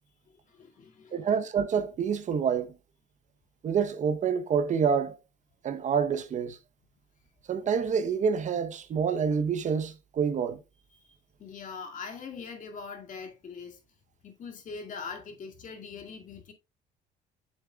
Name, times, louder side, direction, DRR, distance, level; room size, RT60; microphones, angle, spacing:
voice 1, 0.5-1.4 10.9-11.1 11.4-13.8 14.2-16.5, left 5 dB, 50° left, 2.3 m, -42 dB
voice 2, 1.1-2.7 3.6-5.2 5.6-6.6 7.5-10.6, right 6 dB, 45° right, 0.9 m, -27 dB
9.4 x 7.0 x 2.3 m
cardioid pair, 110°, 17 cm